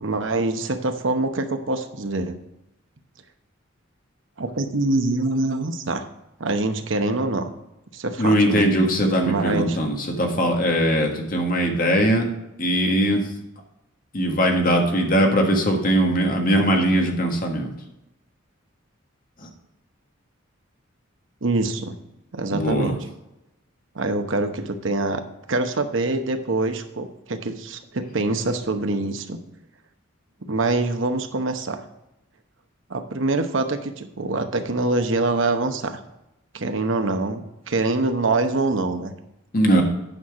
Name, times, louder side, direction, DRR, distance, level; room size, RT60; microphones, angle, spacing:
voice 1, 0.0-2.4 4.4-6.1 6.4-7.5 7.9-8.7 9.2-9.8 21.4-22.0 22.3-22.9 23.9-29.4 30.5-31.8 32.9-36.0 36.5-39.1, right 2 dB, 65° right, 7 dB, 0.9 m, -25 dB
voice 2, 8.2-12.3 12.6-13.2 14.1-17.7 22.5-23.0 39.5-39.8, equal, 45° left, 2 dB, 1.6 m, -20 dB
9.1 x 5.9 x 4.8 m, 0.90 s
head